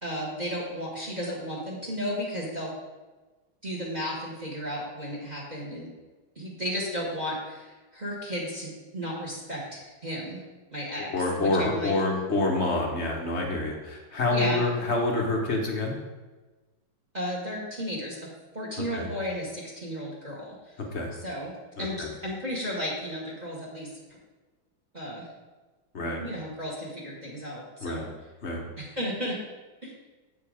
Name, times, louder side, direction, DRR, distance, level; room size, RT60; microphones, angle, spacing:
voice 1, 0.0-2.7 3.6-5.9 6.3-10.4 10.7-11.9 14.3-14.6 17.1-18.2 18.5-20.7 21.2-21.5 21.8-23.9 24.9-25.3 26.2-28.1 28.8-29.4 29.8-29.9, equal, 20° right, -3 dB, 1.5 m, -34 dB
voice 2, 11.1-16.0 18.9-19.1 20.9-21.1 21.8-22.1 25.9-26.2 27.8-28.1 28.4-28.6, left 2 dB, 40° left, 1 dB, 1.0 m, -27 dB
8.1 x 5.3 x 5.0 m, 1.2 s
omnidirectional pair, 2.3 m